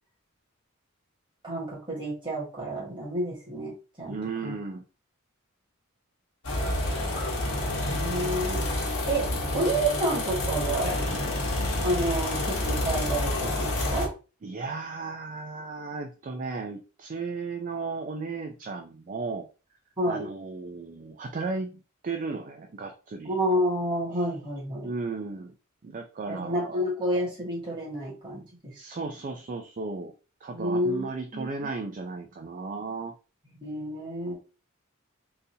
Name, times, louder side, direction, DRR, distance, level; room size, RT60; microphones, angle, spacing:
voice 1, 1.4-4.2 4.4-4.5 7.9-8.6 9.1-11.0 11.8-14.1 20.0-20.3 23.3-24.9 26.3-28.4 30.5-31.1 31.3-31.5 33.5-34.3, right 1 dB, 25° right, -5 dB, 1.8 m, -29 dB
voice 2, 4.1-4.8 14.4-19.5 20.1-23.3 24.8-25.5 25.8-26.8 28.7-30.1 30.4-33.1, right 4 dB, 40° right, 4 dB, 0.4 m, -35 dB
sound 1, 6.4-14.1, left 1 dB, 70° left, 1.2 m, -28 dB
3.8 x 2.6 x 2.7 m, 0.33 s
head